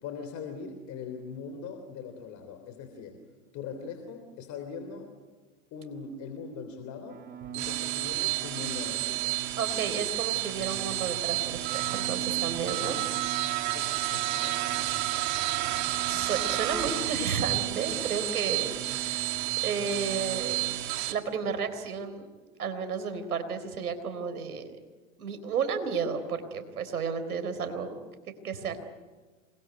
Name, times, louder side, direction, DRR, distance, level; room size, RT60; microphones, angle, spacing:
voice 1, 0.0-3.2 3.5-5.1 5.7-7.3 7.5-9.4 13.7-14.6, left 5 dB, 40° left, 7 dB, 3.3 m, -41 dB
sound 1, 7.1-21.0, right 11 dB, 20° right, 1.9 m, -43 dB
sound 2, 7.4-21.1, right 16 dB, 40° right, 2.4 m, -31 dB
voice 2, 9.6-13.0 15.2-15.6 16.1-19.3 19.6-20.6 21.1-22.3 22.6-24.8 25.2-28.0 28.4-28.8, right 6 dB, 80° right, 9 dB, 4.1 m, -32 dB
28.0 x 22.0 x 9.4 m, 1.4 s
hypercardioid pair, 110°, 44 cm